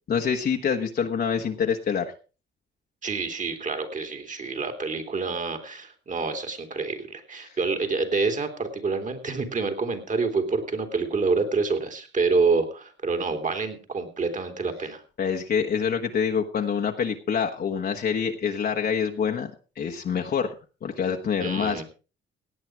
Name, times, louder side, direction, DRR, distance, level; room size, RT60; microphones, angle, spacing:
voice 1, 0.1-2.1 7.4-7.6 15.2-19.5 19.8-20.5 20.8-21.8, left 7 dB, 55° left, 2 dB, 1.4 m, -26 dB
voice 2, 3.0-15.0 21.4-21.8, right 4 dB, 40° right, 7 dB, 3.2 m, -27 dB
17.5 x 8.9 x 4.7 m, 0.35 s
cardioid pair, 90°, 20 cm